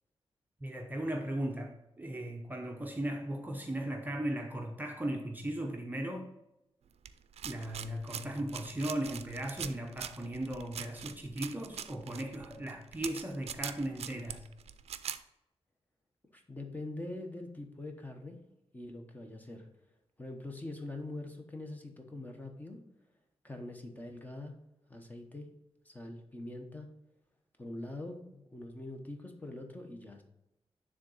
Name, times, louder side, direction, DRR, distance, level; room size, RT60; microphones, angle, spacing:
voice 1, 0.6-6.3 7.4-14.5, right 1 dB, 15° right, 1 dB, 0.7 m, -37 dB
sound 1, 7.1-15.2, right 8 dB, 75° right, 0.4 m, -43 dB
voice 2, 16.3-18.4 18.7-19.7 20.2-22.8 23.4-24.5 24.9-25.5 25.8-26.9 27.6-30.2, left 2 dB, 15° left, 3 dB, 1.0 m, -43 dB
9.5 x 3.7 x 4.1 m, 0.87 s
wide cardioid pair, 105°, 11 cm